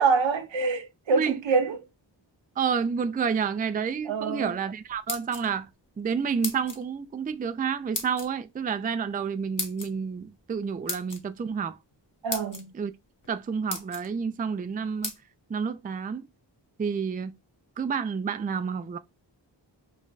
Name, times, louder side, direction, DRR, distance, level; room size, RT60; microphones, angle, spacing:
voice 1, 0.0-1.8 4.1-4.6 12.2-12.7, right 4 dB, 85° right, 0.7 m, -25 dB
voice 2, 2.6-5.7 6.0-11.8 12.7-12.9 13.3-15.1 15.5-16.3 16.8-17.3 17.8-19.0, right 6 dB, 20° right, 0.3 m, -29 dB
sound 1, 4.9-5.7 6.4-6.8 7.9-8.3 9.6-9.9 10.9-11.2 11.9-12.0 12.3-12.6 13.2-13.3 13.7-14.1 15.0-15.2, left 3 dB, 45° left, 1.0 m, -34 dB
3.2 x 2.2 x 3.8 m
wide cardioid pair, 55°, 45 cm